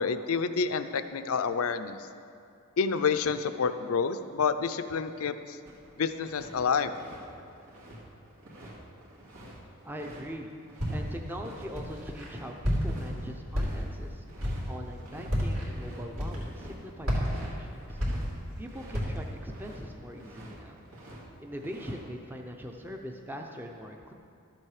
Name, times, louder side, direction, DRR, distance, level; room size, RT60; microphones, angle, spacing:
voice 1, 0.0-2.0 2.8-5.6 6.0-6.9, left 5 dB, 80° left, 11 dB, 0.5 m, -28 dB
sound 1, 5.6-6.5 6.8-11.0 11.4-11.7 11.9-13.9 14.3-14.6 14.9-15.4 15.6-19.0 19.3-19.8 20.2-21.2 21.5-22.0, right 1 dB, 85° right, 2.2 m, -49 dB
voice 2, 9.8-10.5 10.9-14.2 14.7-18.0 18.6-20.8 21.4-24.1, equal, 10° right, 2 dB, 0.5 m, -41 dB
Walk footsteps, 10.8-11.2 11.7-12.3 12.6-13.1 13.5-14.0 14.4-14.7 15.2-15.7 16.1-16.7 17.0-18.6 18.9-19.3, equal, 70° right, 2.8 m, -30 dB
12.5 x 7.6 x 4.9 m, 2.5 s
head